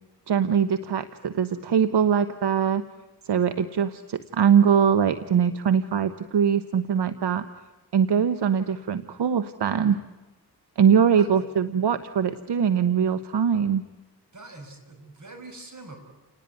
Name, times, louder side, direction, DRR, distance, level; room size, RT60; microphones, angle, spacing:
voice 1, 0.3-2.8 3.2-7.4 7.9-10.0 10.8-13.8, right 7 dB, 75° right, 11 dB, 1.1 m, -22 dB
voice 2, 14.3-16.0, right 2 dB, 45° right, 6 dB, 6.2 m, -44 dB
29.5 x 19.5 x 9.4 m, 1.2 s
cardioid pair, 85°, 41 cm